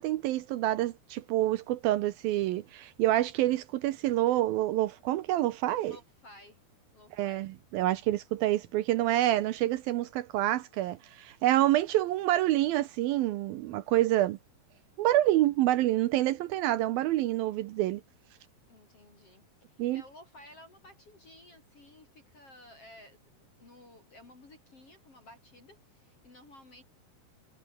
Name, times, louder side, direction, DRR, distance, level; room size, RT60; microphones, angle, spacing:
voice 1, 0.0-6.0 7.2-14.4 15.0-18.0 19.8-20.0, right 15 dB, 75° right, 2.4 m, -27 dB
voice 2, 5.7-6.6 6.9-7.4 18.7-26.8, left 1 dB, 35° left, 6.3 m, -54 dB
omnidirectional pair, 4.7 m